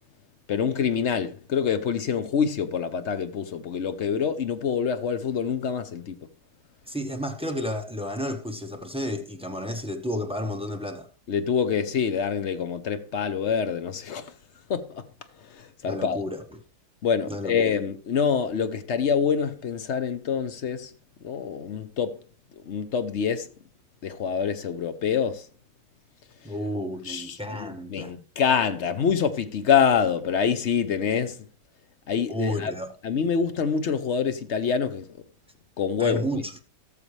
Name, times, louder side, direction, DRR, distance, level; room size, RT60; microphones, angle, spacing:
voice 1, 0.5-6.2 11.3-14.3 14.7-15.0 15.5-16.2 17.0-20.9 21.2-22.1 22.7-23.5 24.0-25.5 27.1-31.5 32.1-32.7 33.0-35.1 35.8-36.4, left 7 dB, 50° left, 0.9 m, -26 dB
voice 2, 6.9-11.1 15.8-16.6 17.3-17.6 26.4-28.1 32.3-32.9 36.0-36.5, left 1 dB, 5° right, 0.5 m, -31 dB
17.5 x 6.8 x 3.2 m
omnidirectional pair, 1.8 m